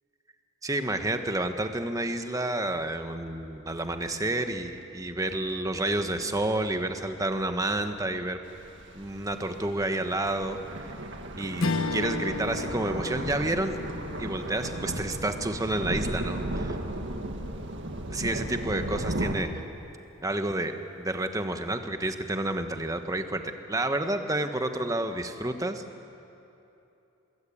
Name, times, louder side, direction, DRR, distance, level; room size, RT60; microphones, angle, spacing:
voice 1, 0.6-8.4 8.9-10.6 11.4-13.8 14.2-16.8 18.1-19.6 20.2-23.4 23.7-25.8, right 1 dB, 15° right, 7 dB, 1.2 m, -30 dB
sound 1, 8.4-19.4, right 1 dB, 55° right, 1.9 m, -35 dB
Strum, 11.6-16.2, left 3 dB, 65° left, 1.2 m, -34 dB
27.0 x 20.5 x 8.8 m, 2.9 s
head